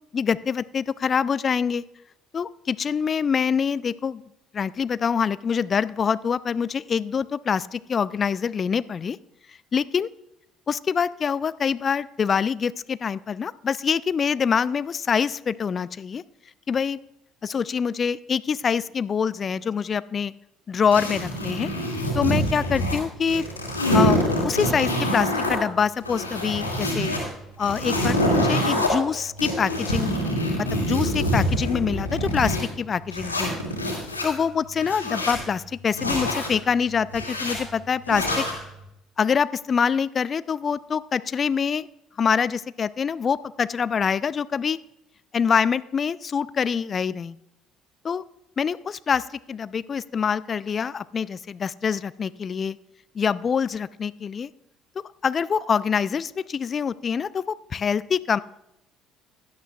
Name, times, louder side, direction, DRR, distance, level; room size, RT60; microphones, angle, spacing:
voice 1, 0.1-1.8 2.3-4.2 4.5-9.2 9.7-10.1 10.7-16.2 16.7-17.0 17.4-20.3 20.7-21.7 22.1-23.4 23.9-27.1 27.6-33.5 34.2-38.5 39.2-41.9 42.2-44.8 45.3-47.4 48.0-48.2 48.6-52.8 53.1-54.5 55.2-58.4, left 6 dB, 35° left, 18 dB, 0.4 m, -25 dB
sound 1, 20.9-23.0 23.3-25.6 26.0-27.2 27.6-28.9 29.4-32.6 33.1-34.3 34.8-35.4 35.9-36.5 37.1-37.6 38.1-38.6, equal, 90° left, 2.2 m, -25 dB
16.5 x 11.5 x 2.4 m, 0.82 s
figure-of-eight pair, 55°, 0 cm